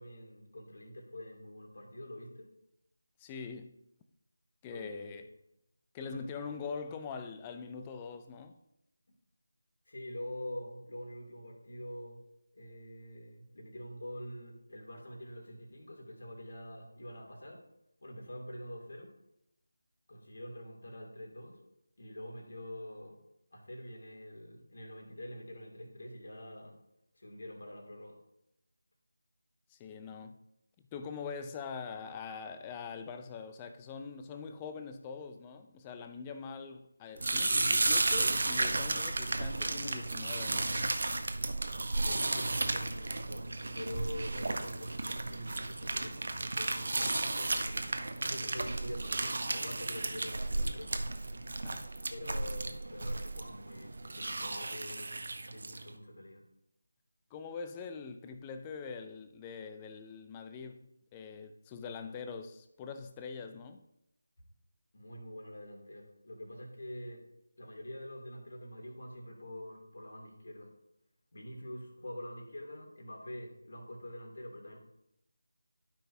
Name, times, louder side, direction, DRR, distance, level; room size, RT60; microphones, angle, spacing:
voice 1, 0.0-2.5 4.7-5.3 6.0-6.6 9.9-12.2 12.5-17.6 18.0-19.1 20.1-21.6 22.0-23.2 23.5-26.8 27.1-28.2 37.5-37.8 42.0-47.9 48.3-50.9 52.1-56.4 64.9-67.2 67.6-70.7 71.3-74.8, left 1 dB, 55° left, 2.6 m, -46 dB
voice 2, 3.2-3.7 4.6-5.3 5.9-8.6 29.7-30.3 30.9-40.8 51.4-51.9 57.3-63.8, left 5 dB, 15° left, 0.5 m, -43 dB
sound 1, 37.2-55.9, right 2 dB, 50° right, 0.8 m, -33 dB
13.0 x 5.9 x 2.7 m
figure-of-eight pair, 160°, 0 cm